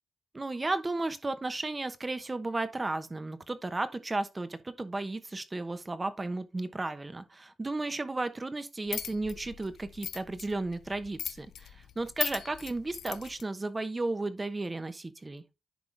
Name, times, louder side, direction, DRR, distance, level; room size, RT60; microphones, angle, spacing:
voice 1, 0.3-15.4, right 2 dB, 25° right, 1.0 m, -34 dB
sound 1, 8.9-13.4, left 9 dB, 85° left, 0.4 m, -39 dB
10.5 x 3.8 x 3.5 m
cardioid pair, 70°, 0 cm